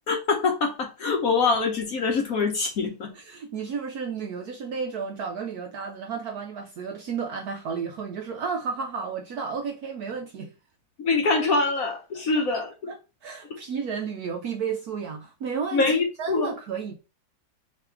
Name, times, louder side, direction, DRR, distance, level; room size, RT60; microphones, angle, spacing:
voice 1, 0.1-3.1 11.0-12.9 13.5-13.6 15.7-16.5, left 4 dB, 55° left, 1.1 m, -24 dB
voice 2, 3.1-10.5 12.9-13.0 13.2-15.9 16.2-16.9, right 6 dB, 70° right, 0.9 m, -32 dB
3.4 x 3.3 x 4.4 m
omnidirectional pair, 2.1 m